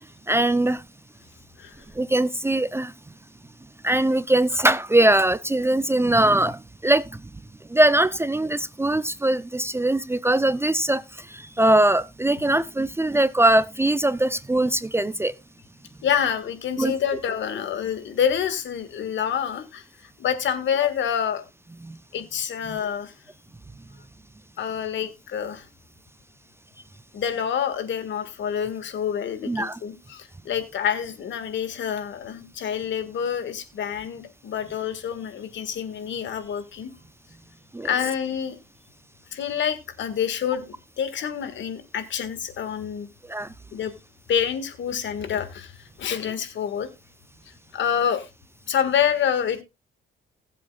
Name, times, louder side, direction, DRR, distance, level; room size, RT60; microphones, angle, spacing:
voice 1, 0.3-0.8 2.0-2.9 3.8-7.2 7.7-15.3 16.8-16.9 21.8-22.0 22.7-22.8 29.5-29.8 37.7-37.9 43.3-43.5, right 1 dB, 10° right, 0.5 m, -21 dB
voice 2, 16.0-19.8 20.2-21.4 22.1-23.1 24.6-25.7 27.1-36.9 37.8-38.6 39.3-43.1 43.7-43.9 44.3-45.7 46.0-46.9 47.7-48.3 48.7-49.6, left 8 dB, 70° left, 1.8 m, -27 dB
20.0 x 7.6 x 2.3 m
cardioid pair, 90°, 20 cm